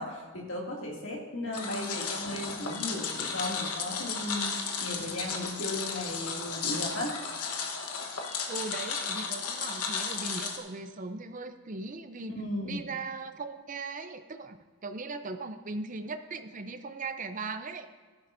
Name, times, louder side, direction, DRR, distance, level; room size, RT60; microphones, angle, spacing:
voice 1, 0.0-7.1 12.3-12.8, left 1 dB, 60° left, -2 dB, 2.4 m, -36 dB
voice 2, 1.4-2.1 8.5-12.4 12.6-14.6 14.8-17.9, right 3 dB, 35° right, 9 dB, 0.6 m, -39 dB
sound 1, 1.5-10.6, left 5 dB, 90° left, 1.3 m, -34 dB
16.5 x 10.0 x 2.6 m, 1.5 s
head